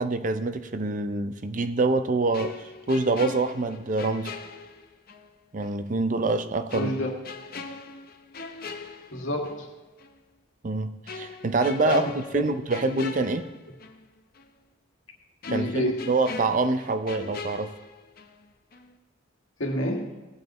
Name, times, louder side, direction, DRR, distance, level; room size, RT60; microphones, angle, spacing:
voice 1, 0.0-2.6 2.9-4.4 5.5-7.0 10.6-12.1 12.3-13.5 15.5-17.7, right 3 dB, 40° right, 10 dB, 0.5 m, -26 dB
sound 1, 2.3-5.3 5.6-5.8 6.7-9.7 10.0-10.2 11.1-14.1 14.4-14.5 15.4-18.5 18.7-19.0, left 4 dB, 45° left, 0.7 m, -41 dB
voice 2, 6.7-7.1 9.1-9.7 11.9-12.5 15.5-16.1 19.6-20.2, left 1 dB, 70° left, 1 dB, 1.7 m, -29 dB
17.5 x 7.9 x 3.0 m, 1.1 s
head